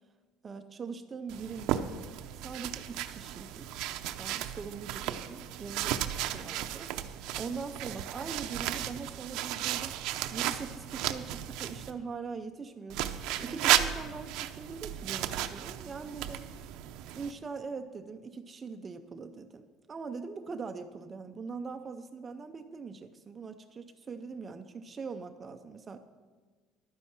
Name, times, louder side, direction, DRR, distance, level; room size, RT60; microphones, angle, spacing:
voice 1, 0.4-1.9 2.4-3.7 4.2-6.9 7.4-10.0 10.3-16.4 17.1-26.0, right 5 dB, 20° right, 8 dB, 0.4 m, -42 dB
sound 1, 1.3-11.9 12.9-17.3, right 12 dB, 60° right, 0.6 m, -34 dB
11.5 x 9.8 x 5.9 m, 1.4 s
cardioid pair, 180°, 0 cm